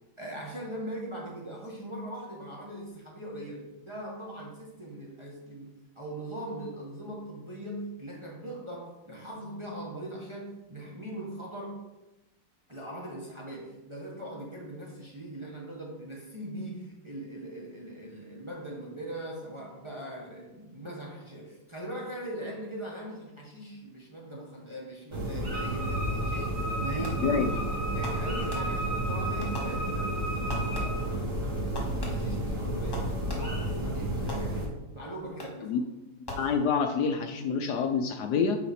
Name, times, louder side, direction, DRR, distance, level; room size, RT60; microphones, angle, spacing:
voice 1, 0.2-11.8 12.7-27.7 27.9-35.8, right 1 dB, 20° right, -3 dB, 1.0 m, -41 dB
sound 1, 25.1-34.7, right 1 dB, 75° right, 3.1 m, -32 dB
Wind instrument woodwind instrument, 25.5-31.0, right 1 dB, 55° right, 2.7 m, -36 dB
Fireworks, 27.0-27.5 28.0-29.0 29.4-30.2 30.5-31.2 31.8-33.7 34.3-34.9 35.4-35.8 36.3-37.0, left 1 dB, 15° left, 1.3 m, -43 dB
voice 2, 36.4-38.6, left 6 dB, 70° left, 5 dB, 1.1 m, -27 dB
7.9 x 5.1 x 4.3 m, 1.0 s
omnidirectional pair, 2.0 m